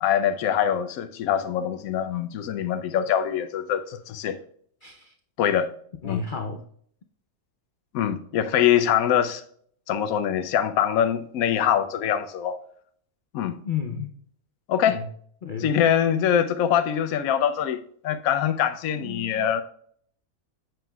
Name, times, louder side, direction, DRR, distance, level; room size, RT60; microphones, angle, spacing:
voice 1, 0.0-4.4 5.4-5.7 6.0-6.2 7.9-9.4 9.9-12.6 13.3-13.6 14.7-15.0 15.6-19.6, left 9 dB, 75° left, 1.0 m, -24 dB
voice 2, 4.8-5.1 6.0-6.6 13.6-14.1 14.9-15.1 15.4-15.7 18.9-19.5, left 6 dB, 60° left, 0.5 m, -32 dB
7.5 x 6.6 x 2.3 m
omnidirectional pair, 1.6 m